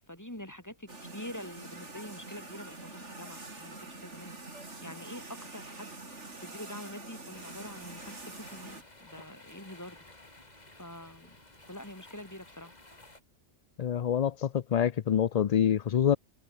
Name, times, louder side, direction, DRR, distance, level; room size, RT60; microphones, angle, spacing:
voice 1, 0.0-5.9 6.2-10.1 10.8-11.4 11.7-12.7, left 1 dB, 15° left, 4.2 m, -46 dB
sound 1, 0.9-8.8, right 2 dB, 80° right, 4.2 m, -45 dB
sound 2, 7.3-13.2, left 2 dB, 35° left, 3.3 m, -54 dB
voice 2, 13.8-16.2, left 9 dB, 55° left, 0.4 m, -26 dB
omnidirectional pair, 1.2 m